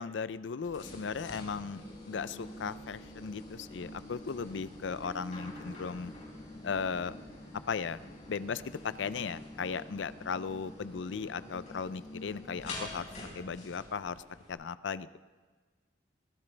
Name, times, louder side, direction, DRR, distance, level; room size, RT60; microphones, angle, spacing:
voice 1, 0.0-6.1 6.6-7.1 7.7-8.0 8.3-13.1 13.3-14.2 14.5-15.2, left 5 dB, 85° left, 15 dB, 0.5 m, -37 dB
sound 1, 0.6-14.5, left 1 dB, 40° left, 5.4 m, -47 dB
23.0 x 16.0 x 3.4 m, 1.4 s
head